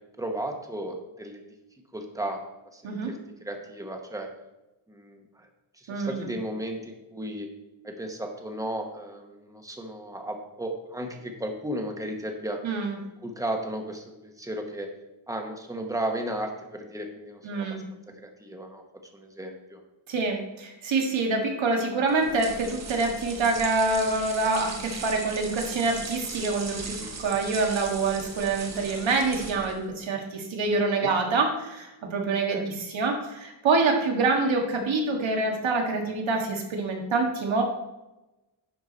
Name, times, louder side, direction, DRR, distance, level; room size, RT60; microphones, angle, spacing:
voice 1, 0.2-1.4 1.9-2.4 2.7-4.3 4.9-5.5 5.8-7.5 7.8-12.6 13.2-14.9 15.3-17.8 18.2-18.8 19.1-19.8 26.9-27.1 31.0-31.1 32.5-32.7, right 1 dB, 5° right, 3 dB, 1.1 m, -34 dB
voice 2, 12.6-13.0 17.4-17.8 20.1-37.6, right 3 dB, 70° right, 2 dB, 1.7 m, -26 dB
sound 1, 22.1-29.9, right 4 dB, 35° right, 1.1 m, -38 dB
10.5 x 4.9 x 4.0 m, 1.0 s
wide cardioid pair, 135°, 47 cm